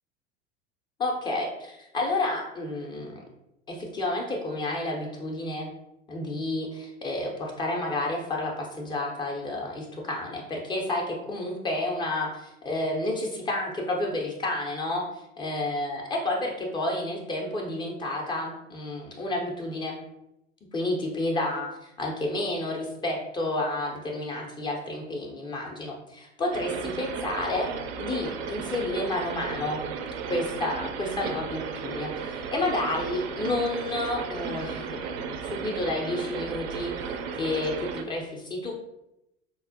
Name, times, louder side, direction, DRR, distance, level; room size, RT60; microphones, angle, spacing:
voice 1, 1.0-3.2 3.7-5.7 6.1-20.0 20.7-27.7 28.0-29.8 30.2-38.7, left 2 dB, 15° left, -1 dB, 0.3 m, -30 dB
sound 1, 26.5-38.0, right 6 dB, 60° right, 0.5 m, -34 dB
4.1 x 2.1 x 2.5 m, 0.88 s
figure-of-eight pair, 75°, 37 cm